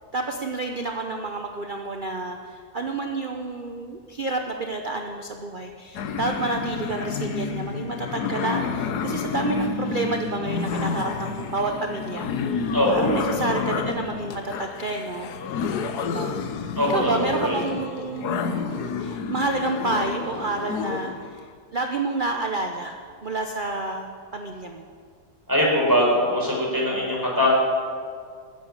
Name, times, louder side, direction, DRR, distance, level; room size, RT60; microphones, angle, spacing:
voice 1, 0.1-15.3 15.5-15.7 16.0-16.4 16.9-21.4 21.7-24.9, right 3 dB, 40° right, 3 dB, 0.8 m, -29 dB
sound 1, 5.9-21.3, left 5 dB, 75° left, 1.4 m, -29 dB
voice 2, 17.2-17.6 25.5-27.5, left 1 dB, 10° right, -4 dB, 4.5 m, -21 dB
15.0 x 8.2 x 9.7 m, 2.1 s
omnidirectional pair, 1.7 m